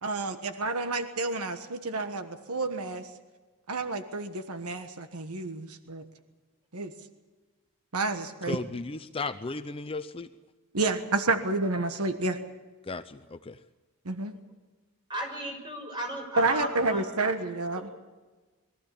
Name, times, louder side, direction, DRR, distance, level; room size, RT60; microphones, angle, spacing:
voice 1, 0.0-3.1 3.7-6.1 6.7-6.9 7.9-8.6 10.7-12.4 14.0-14.4 16.4-18.0, right 3 dB, 80° right, 8 dB, 1.4 m, -29 dB
voice 2, 8.5-10.3 12.8-13.6, left 3 dB, 25° left, 10 dB, 0.5 m, -35 dB
voice 3, 15.1-17.0, equal, 20° right, 1 dB, 6.4 m, -35 dB
22.5 x 15.0 x 8.6 m, 1.3 s
head